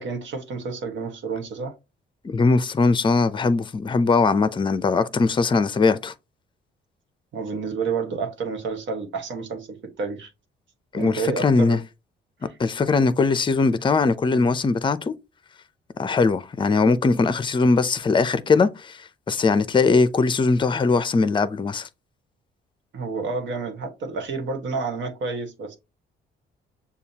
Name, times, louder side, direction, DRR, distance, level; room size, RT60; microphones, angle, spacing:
voice 1, 0.0-1.7 7.3-10.3 10.9-11.8 22.9-25.8, right 4 dB, 70° right, 1.4 m, -30 dB
voice 2, 2.2-6.1 10.9-11.8 12.6-15.1 16.0-19.0 19.3-21.9, left 4 dB, 25° left, 0.5 m, -20 dB
6.9 x 2.3 x 2.8 m
cardioid pair, 90°, 20 cm